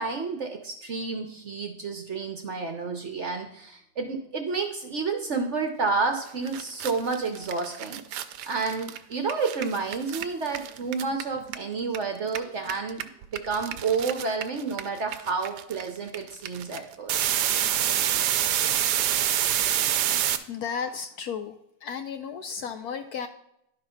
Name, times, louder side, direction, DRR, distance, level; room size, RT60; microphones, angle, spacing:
voice 1, 0.0-17.3, right 4 dB, 55° right, 4 dB, 0.9 m, -30 dB
sound 1, 6.2-6.3 6.5-12.0 12.2-20.4, right 11 dB, 70° right, 1.1 m, -27 dB
voice 2, 20.5-21.6 21.8-23.3, left 6 dB, 70° left, 7 dB, 0.9 m, -33 dB
11.5 x 4.0 x 5.6 m, 0.80 s
omnidirectional pair, 2.0 m